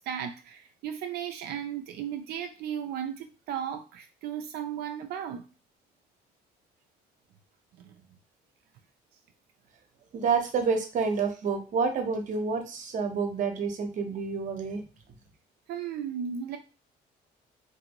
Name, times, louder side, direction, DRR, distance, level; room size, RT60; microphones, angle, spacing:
voice 1, 0.0-5.4 7.8-7.9 15.7-16.6, right 8 dB, 70° right, 7 dB, 0.4 m, -35 dB
voice 2, 10.1-14.8, right 5 dB, 50° right, 5 dB, 0.8 m, -28 dB
2.6 x 2.6 x 2.9 m, 0.33 s
cardioid pair, 110°, 17 cm